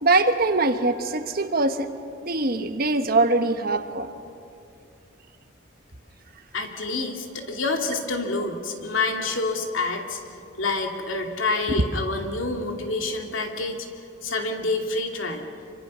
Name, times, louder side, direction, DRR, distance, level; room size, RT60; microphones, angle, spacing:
voice 1, 0.0-1.9 2.2-4.1, right 2 dB, 45° right, 8 dB, 1.2 m, -22 dB
voice 2, 6.5-10.2 10.6-13.8 14.2-15.5, left 3 dB, 75° left, 3 dB, 2.6 m, -27 dB
26.5 x 25.0 x 6.3 m, 2.5 s
head